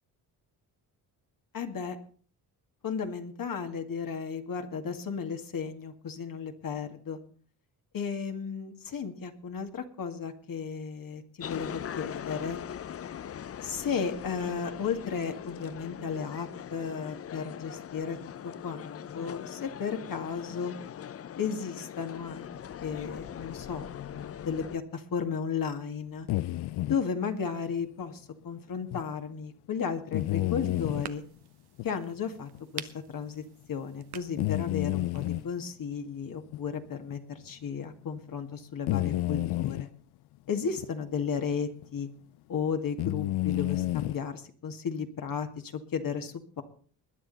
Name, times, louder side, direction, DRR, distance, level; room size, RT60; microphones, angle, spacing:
voice 1, 1.5-2.0 2.8-7.2 7.9-12.6 13.6-18.2 18.4-20.7 21.3-26.3 26.9-31.2 31.8-39.9 40.5-42.1 42.5-46.6, left 6 dB, 60° left, 5 dB, 2.1 m, -34 dB
sound 1, 11.4-24.8, left 9 dB, 40° left, 0.5 m, -41 dB
sound 2, 26.3-27.0 28.9-29.0 30.1-31.1 31.8-31.9 32.6-32.7 34.4-35.5 36.5-36.6 37.1-37.2 38.9-39.8 40.8-40.9 41.8-42.0 43.0-44.2, left 17 dB, 85° left, 0.5 m, -30 dB
sound 3, 30.1-35.5, right 11 dB, 80° right, 1.1 m, -48 dB
21.0 x 9.8 x 4.1 m, 0.44 s
cardioid pair, 80°, 38 cm